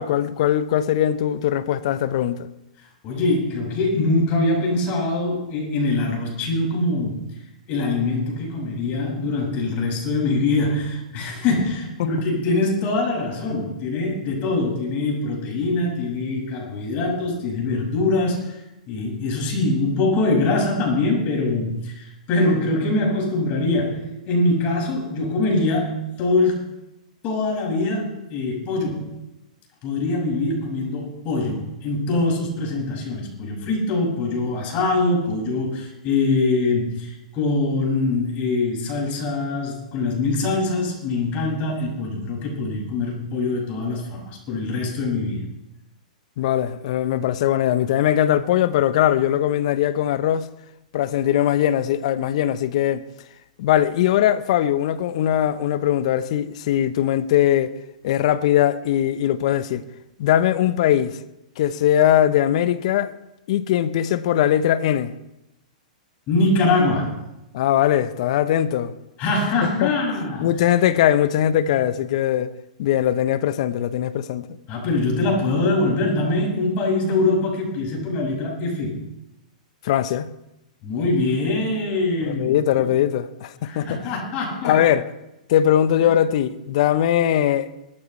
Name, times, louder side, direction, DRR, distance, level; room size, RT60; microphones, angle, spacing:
voice 1, 0.0-2.5 12.0-12.1 46.4-50.5 50.9-53.0 53.6-57.7 58.0-59.8 60.2-61.2 61.6-63.1 63.5-65.1 67.5-68.9 69.8-69.9 70.4-72.5 72.8-74.5 79.8-80.3 82.2-84.0 84.6-85.0 85.5-87.7, left 11 dB, 55° left, 0.9 m, -20 dB
voice 2, 3.0-7.2 7.7-18.6 18.9-26.7 27.2-29.1 29.8-45.4 66.3-67.3 69.2-70.5 74.7-79.0 80.8-82.9 83.6-84.8, left 2 dB, 35° left, 6.3 m, -23 dB
22.0 x 13.0 x 3.3 m
hypercardioid pair, 115°, 4 cm